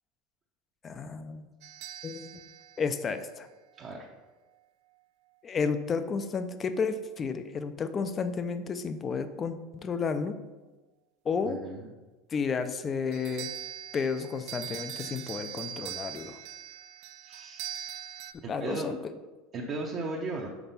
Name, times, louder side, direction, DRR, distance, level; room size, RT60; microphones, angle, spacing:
voice 1, 0.8-1.5 2.0-2.4 2.8-3.5 5.4-10.4 11.3-11.6 12.3-13.5 13.9-16.4 18.5-19.1, left 5 dB, 25° left, 10 dB, 0.4 m, -32 dB
sound 1, 1.6-3.9 13.1-18.3, right 10 dB, 65° right, 0.5 m, -42 dB
voice 2, 3.8-4.1 11.4-11.9 17.2-17.7 18.4-18.9 19.5-20.5, right 3 dB, 30° right, -2 dB, 0.7 m, -36 dB
5.9 x 4.5 x 5.4 m, 1.2 s
supercardioid pair, 150°, 0 cm